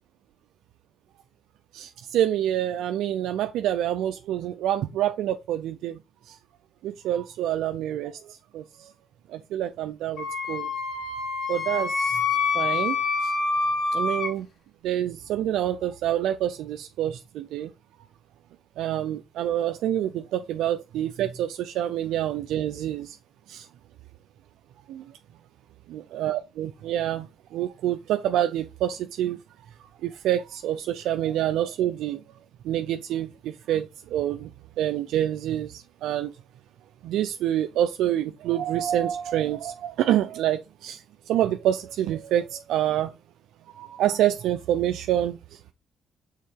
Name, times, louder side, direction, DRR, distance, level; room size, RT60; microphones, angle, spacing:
voice 1, 1.7-6.0 6.3-6.4 6.8-8.9 9.3-10.7 11.5-12.2 12.5-13.3 13.9-14.5 14.8-17.7 18.8-23.2 23.5-23.7 24.9-25.0 25.9-29.4 30.0-32.2 32.6-34.5 34.8-36.3 37.0-43.1 43.8-45.7, right 11 dB, 85° right, 0.5 m, -27 dB
Wind instrument woodwind instrument, 10.2-14.3, left 4 dB, 65° left, 2.5 m, -26 dB
6.5 x 3.7 x 4.7 m
cardioid pair, 90°, 0 cm